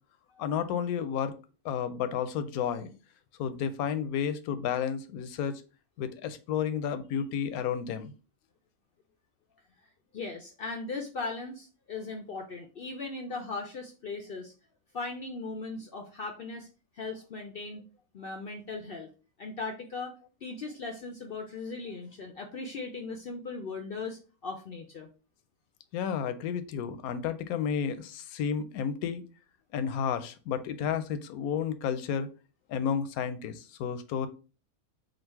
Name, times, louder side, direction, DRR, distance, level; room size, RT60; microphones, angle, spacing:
voice 1, 0.4-1.3 1.6-2.9 3.4-5.6 6.0-8.1 25.9-29.2 29.7-32.3 32.7-34.3, left 7 dB, 80° left, 11 dB, 1.0 m, -31 dB
voice 2, 10.1-14.5 14.9-16.7 17.0-17.8 18.1-19.1 19.4-20.1 20.4-25.1, left 3 dB, 65° left, 4 dB, 0.5 m, -38 dB
3.9 x 2.4 x 4.4 m, 0.35 s
omnidirectional pair, 1.5 m